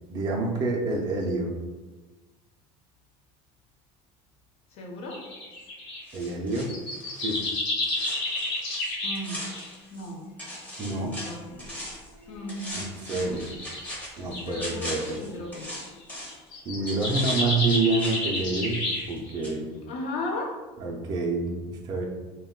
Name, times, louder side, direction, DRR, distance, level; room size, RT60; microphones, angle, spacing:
voice 1, 0.1-1.5 6.1-6.7 7.1-7.4 10.8-11.2 12.7-13.5 14.2-15.2 16.7-18.8 19.1-19.7 20.8-22.0, right 3 dB, 30° right, -1 dB, 0.4 m, -28 dB
voice 2, 4.7-5.2 9.0-9.5 9.9-10.3 10.8-11.7 12.3-12.8 13.1-13.5 14.4-15.7 16.7-16.9 19.9-20.6, left 2 dB, 50° left, 2 dB, 0.6 m, -36 dB
sound 1, 5.1-6.0 6.5-9.7 11.4-11.5 12.2-12.6 13.3-14.7 15.6-15.9 16.3-19.4, left 2 dB, 80° left, 1.1 m, -31 dB
sound 2, 6.1-10.1 10.4-12.1 12.5-16.5 16.9-19.2 19.4-19.6, equal, 10° left, 0.6 m, -40 dB
2.2 x 2.1 x 3.6 m, 1.2 s
cardioid pair, 145°, 13 cm